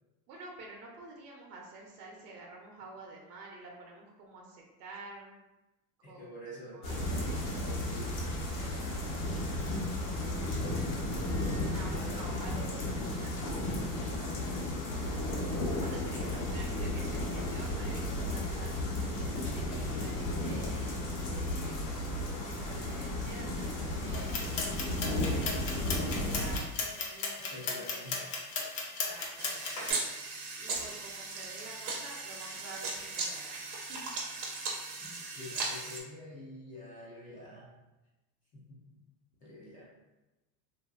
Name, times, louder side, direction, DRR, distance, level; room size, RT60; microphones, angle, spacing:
voice 1, 0.3-5.4 6.1-6.3 6.7-7.5 11.6-13.3 15.8-18.7 19.2-21.8 22.2-24.5 25.0-28.3 29.0-29.8 30.4-34.1, right 3 dB, 65° right, -1 dB, 0.7 m, -49 dB
voice 2, 6.0-6.8 7.1-9.7 10.0-11.0 11.9-12.8 14.0-14.9 16.0-16.5 27.5-28.2 35.4-37.8 38.5-39.0 39.4-39.9, equal, 20° left, -6 dB, 0.3 m, -48 dB
sound 1, 6.8-26.6, left 1 dB, 65° left, 1.1 m, -34 dB
sound 2, 24.1-29.9, left 4 dB, 45° left, 0.7 m, -36 dB
sound 3, 29.4-36.0, right 3 dB, 35° right, 0.6 m, -37 dB
2.8 x 2.7 x 2.4 m, 1.0 s
supercardioid pair, 135°, 50 cm